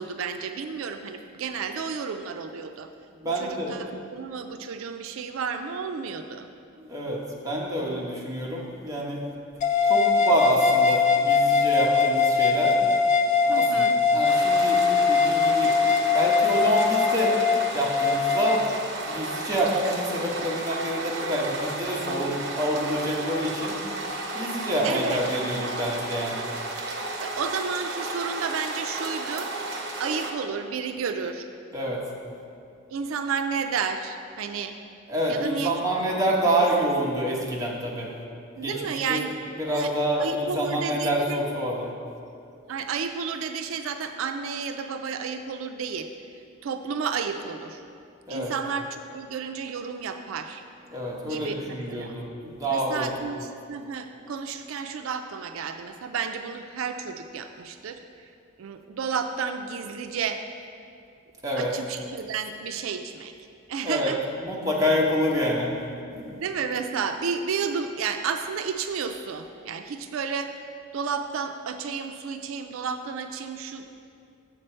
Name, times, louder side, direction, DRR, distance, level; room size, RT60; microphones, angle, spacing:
voice 1, 0.0-2.9 3.2-6.5 13.5-14.0 24.8-25.2 27.2-29.5 30.0-31.5 32.9-34.8 35.3-36.0 36.4-36.5 38.6-39.4 39.6-39.9 40.2-41.4 42.7-46.1 46.6-47.8 48.3-50.6 51.2-52.2 52.7-58.3 58.6-60.4 61.6-63.3 63.7-64.2 66.3-70.5 70.9-74.0, right 6 dB, 80° right, 7 dB, 0.4 m, -32 dB
voice 2, 3.2-3.8 6.8-9.2 9.9-12.7 13.4-15.7 16.1-17.4 17.7-18.6 19.1-23.8 24.3-26.5 31.7-32.0 35.1-38.1 38.6-39.2 39.6-41.9 48.3-48.5 50.9-53.1 61.4-61.7 63.8-64.1 64.4-65.7 66.1-66.3, equal, 15° right, -4 dB, 1.0 m, -27 dB
sound 1, 9.6-18.6, left 5 dB, 35° left, 0.4 m, -21 dB
sound 2, 14.2-30.3, right 2 dB, 55° right, 0.8 m, -33 dB
7.5 x 6.5 x 4.4 m, 2.5 s
head